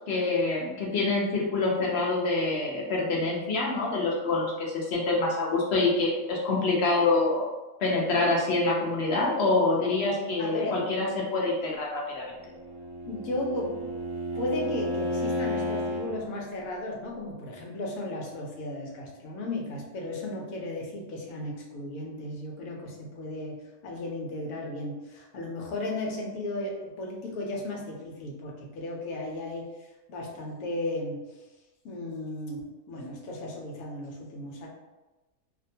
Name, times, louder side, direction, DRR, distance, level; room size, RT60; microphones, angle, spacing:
voice 1, 0.1-7.5 7.8-12.2, left 3 dB, 60° left, -3 dB, 0.7 m, -26 dB
voice 2, 10.4-10.8 11.5-11.6 13.0-13.9 14.3-29.7 30.1-31.2 31.8-32.6 32.9-34.7, left 2 dB, 90° left, -1 dB, 1.1 m, -35 dB
Bowed string instrument, 12.4-16.1, equal, 65° right, 1.0 m, -32 dB
2.6 x 2.2 x 2.6 m, 1.1 s
omnidirectional pair, 1.5 m